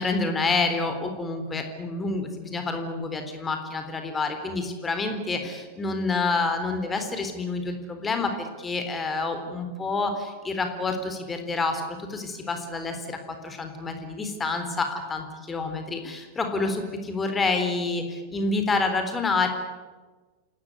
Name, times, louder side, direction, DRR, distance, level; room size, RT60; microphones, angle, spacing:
voice 1, 0.0-19.5, left 3 dB, 15° left, 6 dB, 3.9 m, -28 dB
28.5 x 19.0 x 9.6 m, 1.3 s
figure-of-eight pair, 90°, 0 cm